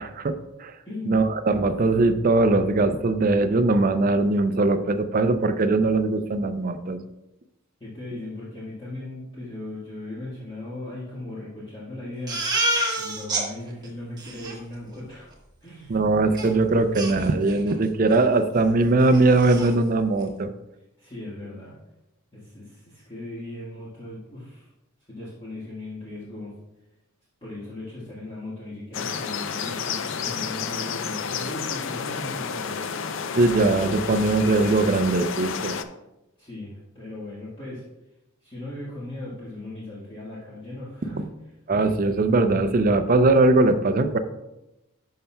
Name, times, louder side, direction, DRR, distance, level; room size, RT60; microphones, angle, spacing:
voice 1, 0.0-0.7 1.0-7.0 15.9-20.5 33.4-35.8 41.7-44.2, right 2 dB, 40° right, 9 dB, 0.4 m, -21 dB
voice 2, 0.8-1.3 7.8-12.7 13.0-15.3 15.6-16.0 21.0-21.8 22.3-24.7 25.1-26.5 27.4-33.0 36.4-37.8 38.4-41.2, left 1 dB, 25° left, -9 dB, 1.5 m, -38 dB
Crying sobbing, 12.3-13.4 13.8-13.9 14.2-14.6 16.4-16.5 16.9-17.7 18.1-18.3 18.6-18.7 19.0-19.7, right 1 dB, 20° right, 1.1 m, -28 dB
sound 1, 28.9-35.8, left 6 dB, 60° left, 0.4 m, -31 dB
10.5 x 5.7 x 2.2 m, 0.93 s
head